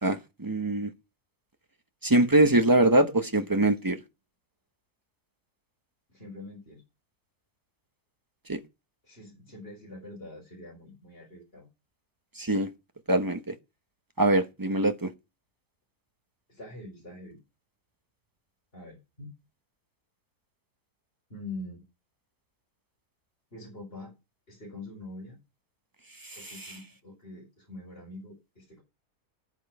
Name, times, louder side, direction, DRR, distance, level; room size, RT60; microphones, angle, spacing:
voice 1, 0.0-0.9 2.0-4.0 8.5-8.6 12.4-12.7 13.1-13.5 14.2-15.1 26.6-26.7, right 1 dB, 20° right, 0.7 m, -23 dB
voice 2, 6.1-6.8 9.0-11.7 16.5-17.4 18.7-19.3 21.3-21.8 23.5-24.1 24.5-25.4 26.4-28.8, left 2 dB, 35° left, 5.1 m, -44 dB
10.5 x 9.2 x 5.3 m
omnidirectional pair, 1.7 m